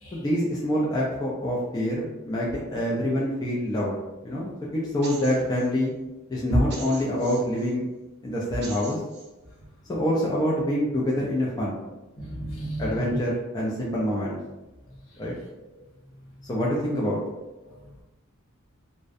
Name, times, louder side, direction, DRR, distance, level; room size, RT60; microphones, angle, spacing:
voice 1, 0.1-4.0 4.2-5.9 6.3-7.9 8.2-9.0 9.9-11.8 12.8-14.4 15.2-15.3 16.5-17.2, equal, 20° left, -5 dB, 0.3 m, -26 dB
sound 1, 5.0-5.7 6.7-7.7 8.6-9.3, right 3 dB, 50° right, 0.5 m, -42 dB
voice 2, 12.2-13.2, right 1 dB, 65° left, -3 dB, 0.7 m, -33 dB
2.4 x 2.1 x 2.5 m, 1.0 s
head